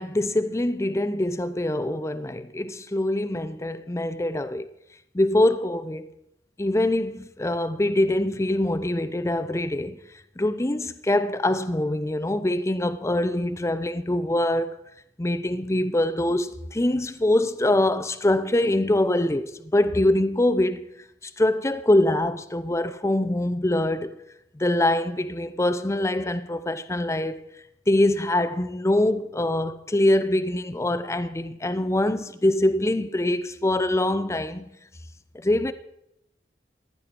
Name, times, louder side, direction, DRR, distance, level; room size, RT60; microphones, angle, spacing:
voice 1, 0.0-4.6 5.1-6.1 6.6-10.0 10.4-14.8 15.2-20.9 21.2-24.2 24.5-27.5 27.9-34.7 35.4-35.7, left 1 dB, 15° left, 0.6 m, -24 dB
15.0 x 10.0 x 4.5 m
head